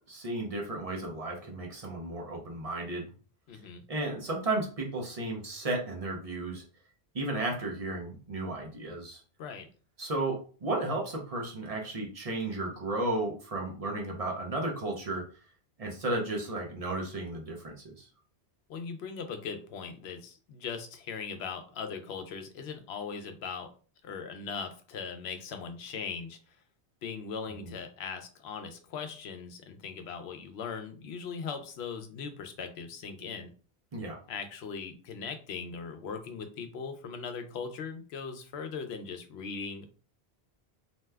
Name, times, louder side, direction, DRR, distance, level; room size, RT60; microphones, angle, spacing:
voice 1, 0.1-3.1 3.9-6.6 7.1-9.2 10.0-15.2 15.8-18.1 27.6-27.7 33.9-34.2, right 2 dB, 40° right, -1 dB, 0.6 m, -34 dB
voice 2, 3.5-3.8 9.4-9.7 18.7-23.7 24.0-26.4 27.0-33.5 34.3-39.9, left 5 dB, 80° left, 6 dB, 0.8 m, -39 dB
2.7 x 2.2 x 3.3 m, 0.39 s
omnidirectional pair, 1.1 m